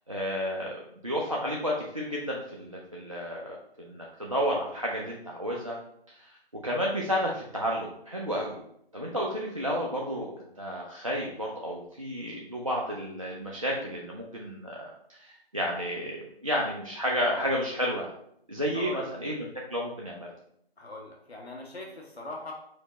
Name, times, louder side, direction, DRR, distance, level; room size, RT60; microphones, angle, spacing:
voice 1, 0.1-5.8 6.1-6.3 6.6-8.6 8.9-10.3 10.6-14.8 15.1-18.1 18.5-20.3, equal, 35° right, -3 dB, 0.4 m, -31 dB
voice 2, 18.7-19.2 20.8-22.5, left 1 dB, 85° left, -1 dB, 1.0 m, -41 dB
4.9 x 2.1 x 3.8 m, 0.72 s
figure-of-eight pair, 155°, 31 cm